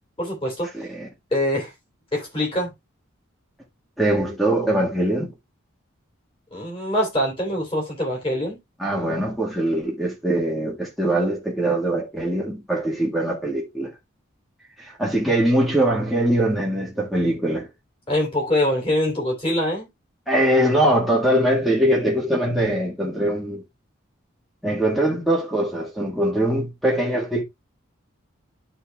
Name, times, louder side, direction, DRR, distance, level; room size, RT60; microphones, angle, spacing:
voice 1, 0.2-0.7 1.3-1.7 2.1-2.7 6.5-8.6 18.1-19.9, left 1 dB, 25° left, 3.3 m, -24 dB
voice 2, 0.7-1.1 4.0-5.3 8.8-13.9 14.8-17.7 20.3-23.6 24.6-27.4, right 1 dB, ahead, 1.6 m, -22 dB
12.5 x 4.3 x 2.3 m
head